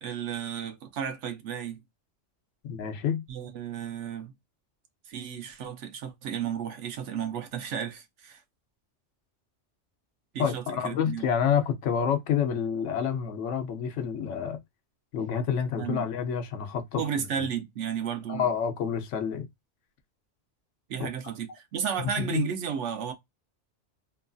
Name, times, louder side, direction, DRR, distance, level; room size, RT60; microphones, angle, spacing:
voice 1, 0.0-1.8 3.3-4.3 5.1-8.4 10.3-11.3 15.8-16.1 17.0-18.5 20.9-23.1, right 8 dB, 85° right, 1.0 m, -33 dB
voice 2, 2.6-3.2 10.4-14.6 15.1-17.5 18.3-19.5 21.0-21.1 22.0-22.4, left 7 dB, 85° left, 1.0 m, -28 dB
3.0 x 2.3 x 2.4 m
omnidirectional pair, 1.2 m